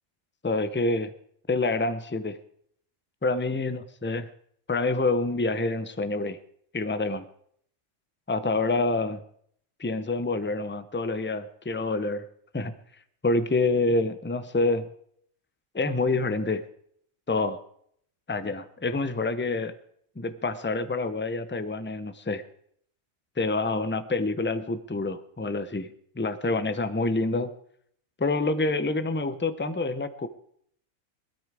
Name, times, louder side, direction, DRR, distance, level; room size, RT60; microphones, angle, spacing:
voice 1, 0.4-1.1 1.5-2.4 3.2-4.3 4.7-6.4 6.7-7.2 8.3-9.2 9.8-12.2 12.5-12.7 13.2-14.9 15.7-16.6 17.3-17.6 18.3-19.7 20.2-22.4 23.4-25.9 26.2-27.5 28.2-30.3, left 3 dB, 15° left, 12 dB, 0.3 m, -27 dB
19.0 x 13.0 x 4.8 m, 0.66 s
omnidirectional pair, 1.5 m